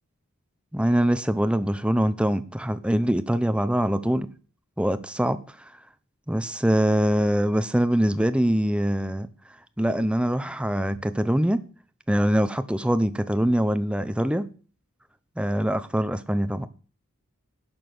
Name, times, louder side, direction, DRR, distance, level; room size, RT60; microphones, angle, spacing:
voice 1, 0.7-4.3 4.8-5.4 6.3-9.3 9.8-11.6 12.1-14.5 15.4-16.7, equal, 5° right, 0.7 m, -23 dB
11.5 x 7.4 x 6.2 m
head